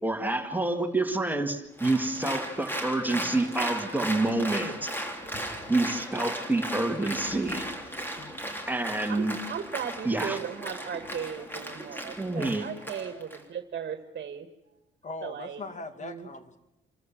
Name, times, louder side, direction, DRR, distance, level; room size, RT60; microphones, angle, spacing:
voice 1, 0.0-4.9 5.7-7.7 8.7-9.4 10.0-10.4 11.9-12.7, right 2 dB, 10° right, 5 dB, 2.0 m, -28 dB
Applause, 1.8-13.4, right 1 dB, 10° left, 3.4 m, -36 dB
voice 2, 9.1-14.5 15.2-15.6 16.0-16.3, right 8 dB, 55° right, 9 dB, 1.8 m, -37 dB
voice 3, 15.0-16.6, left 3 dB, 35° left, 10 dB, 2.3 m, -40 dB
28.0 x 14.0 x 7.4 m, 0.98 s
cardioid pair, 90°, 20 cm